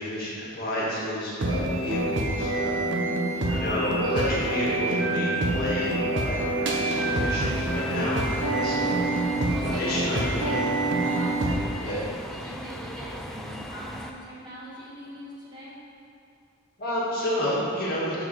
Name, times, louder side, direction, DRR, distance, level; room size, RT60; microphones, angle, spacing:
voice 1, 0.0-2.9 3.5-9.0 9.6-10.6 11.8-12.0 16.8-18.2, left 1 dB, 50° left, -7 dB, 1.8 m, -30 dB
sound 1, 1.4-11.5, right 2 dB, 60° right, 0.9 m, -26 dB
voice 2, 3.2-3.6 9.4-10.3 11.0-12.0 12.3-15.8, equal, 20° right, -8 dB, 1.7 m, -41 dB
sound 2, 6.9-14.1, equal, ahead, 0.3 m, -38 dB
5.7 x 4.7 x 6.0 m, 2.4 s
head